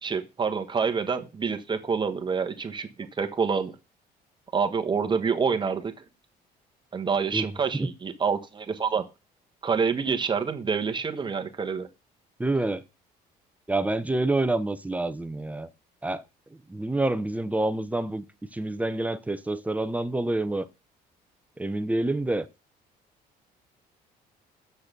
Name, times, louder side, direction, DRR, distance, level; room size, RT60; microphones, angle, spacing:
voice 1, 0.0-3.7 4.5-5.9 6.9-9.0 9.6-11.9, right 5 dB, 25° right, 1.3 m, -27 dB
voice 2, 12.4-12.8 13.7-15.7 16.0-16.2 16.7-18.2 18.5-20.7 21.6-22.5, right 2 dB, 10° right, 0.8 m, -27 dB
6.8 x 6.5 x 6.2 m
cardioid pair, 110°, 17 cm